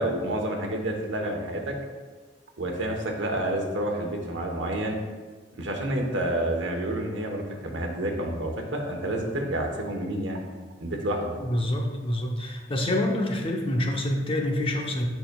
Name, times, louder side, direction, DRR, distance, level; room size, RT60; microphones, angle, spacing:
voice 1, 0.0-1.8 2.6-5.0 5.5-10.4 10.8-11.3, right 1 dB, 75° right, 2 dB, 1.0 m, -29 dB
voice 2, 11.4-15.1, left 1 dB, 30° left, 1 dB, 0.8 m, -27 dB
9.1 x 5.9 x 2.3 m, 1.4 s
head